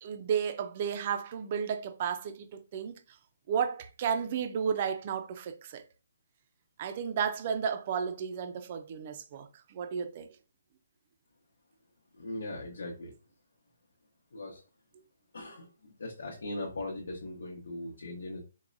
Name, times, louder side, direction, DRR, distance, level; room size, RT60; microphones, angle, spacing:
voice 1, 0.0-3.0 3.5-5.8 6.8-10.3, right 7 dB, 30° right, 0.4 m, -33 dB
voice 2, 12.1-13.1 14.3-14.6 15.3-18.4, left 2 dB, 80° left, 0.9 m, -39 dB
4.6 x 2.1 x 2.5 m
hypercardioid pair, 170°, 0 cm